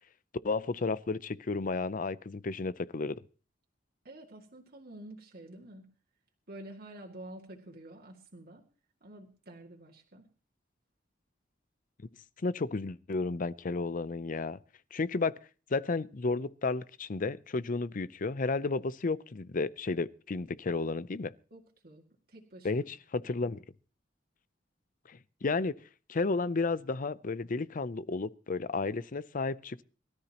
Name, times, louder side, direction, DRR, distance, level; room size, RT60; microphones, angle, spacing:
voice 1, 0.4-3.2 12.4-14.6 14.9-15.4 15.7-21.3 22.6-23.6 25.4-25.7 26.1-29.8, left 3 dB, 45° left, 0.6 m, -32 dB
voice 2, 4.0-5.8 6.5-8.6 9.0-10.3 21.5-22.0 22.3-22.9 23.2-23.3, right 1 dB, 55° right, 2.2 m, -49 dB
23.0 x 13.0 x 3.0 m
head